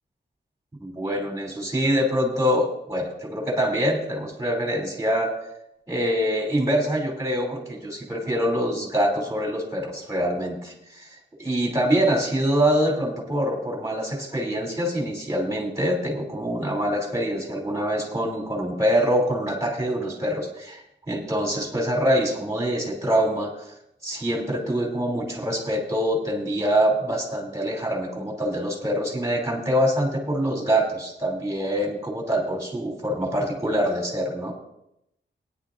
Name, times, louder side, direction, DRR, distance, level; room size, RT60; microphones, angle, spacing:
voice 1, 0.8-5.3 5.9-23.7 24.0-34.5, equal, 15° right, 0 dB, 2.9 m, -25 dB
18.5 x 10.0 x 2.5 m, 0.81 s
wide cardioid pair, 160°, 20 cm